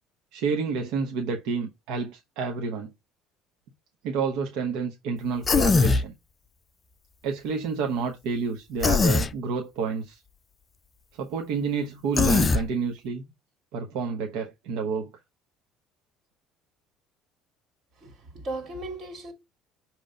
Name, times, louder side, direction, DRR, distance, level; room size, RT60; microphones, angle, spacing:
voice 1, 0.3-2.9 4.0-6.1 7.2-10.2 11.2-13.2 13.7-15.1, right 5 dB, 75° right, 1.0 m, -29 dB
Human voice, 5.4-6.0 8.8-9.3 12.2-12.6, left 4 dB, 25° left, 0.4 m, -20 dB
voice 2, 18.0-19.3, right 2 dB, 50° right, 2.9 m, -36 dB
6.6 x 3.0 x 5.0 m
cardioid pair, 120°, 0 cm